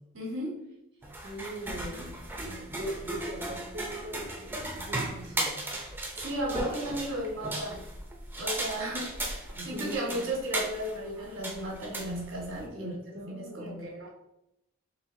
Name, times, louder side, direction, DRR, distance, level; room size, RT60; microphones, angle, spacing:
voice 1, 0.1-0.6 6.1-7.9 8.4-13.0 13.2-14.1, right 1 dB, 70° right, -2 dB, 1.5 m, -35 dB
sound 1, 1.0-12.7, right 1 dB, 10° right, 0.5 m, -36 dB
voice 2, 1.2-2.2 2.5-5.7 9.6-10.2 12.7-13.9, right 1 dB, 50° right, -5 dB, 0.6 m, -41 dB
4.2 x 3.3 x 2.8 m, 0.84 s
head